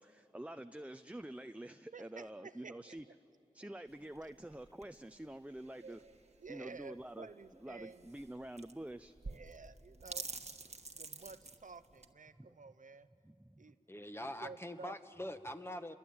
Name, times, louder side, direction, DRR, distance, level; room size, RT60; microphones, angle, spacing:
voice 1, 0.0-3.0 3.5-6.0 6.5-7.3 7.6-9.1 12.4-12.5 13.2-13.6, right 1 dB, 10° right, 9 dB, 0.6 m, -47 dB
voice 2, 1.9-3.0 5.8-8.1 9.3-10.3 10.9-13.1 13.6-14.1 14.4-15.0, right 4 dB, 70° right, 12 dB, 0.8 m, -52 dB
sound 1, 3.9-12.1, right 3 dB, 50° right, 1.4 m, -50 dB
voice 3, 13.9-16.0, left 1 dB, 15° left, 8 dB, 1.3 m, -44 dB
28.0 x 22.5 x 8.7 m, 2.8 s
wide cardioid pair, 50°, 14 cm